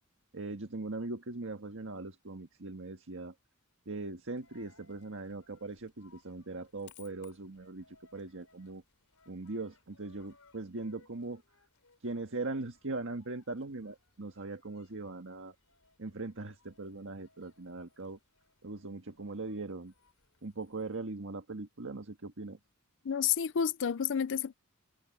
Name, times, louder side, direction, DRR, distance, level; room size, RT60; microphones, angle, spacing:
voice 1, 0.3-3.3 3.8-8.8 9.3-11.4 12.0-15.5 16.0-18.2 18.6-19.9 20.4-22.6, right 2 dB, 60° right, 1.6 m, -40 dB
Coin (dropping), 4.4-21.0, left 5 dB, 75° left, 4.0 m, -66 dB
voice 2, 23.0-24.5, left 8 dB, 55° left, 0.5 m, -30 dB
head